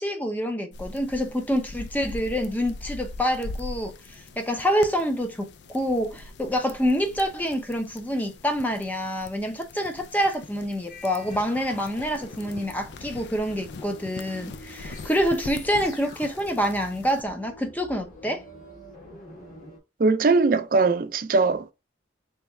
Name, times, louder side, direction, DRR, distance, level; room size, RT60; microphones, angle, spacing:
voice 1, 0.0-18.4, equal, 10° left, 0.6 m, -27 dB
sound 1, 0.7-17.2, left 3 dB, 70° left, 0.4 m, -42 dB
sound 2, 10.9-19.8, left 1 dB, 45° left, 1.5 m, -46 dB
voice 2, 20.0-21.7, right 3 dB, 50° right, 0.4 m, -21 dB
3.3 x 3.1 x 3.4 m
head